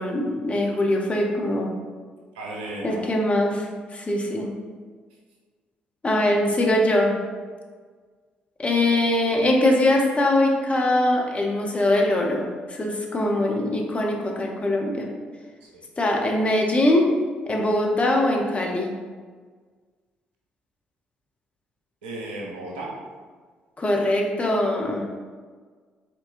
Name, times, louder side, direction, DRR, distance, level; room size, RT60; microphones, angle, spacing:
voice 1, 0.0-1.7 2.8-4.5 6.0-7.1 8.6-15.1 16.0-17.0 17.5-18.9 23.8-25.0, left 1 dB, 25° left, 0 dB, 0.8 m, -22 dB
voice 2, 2.3-3.2 15.6-15.8 22.0-23.1, right 2 dB, 75° right, -3 dB, 0.8 m, -35 dB
4.5 x 4.0 x 2.6 m, 1.5 s
figure-of-eight pair, 45°, 5 cm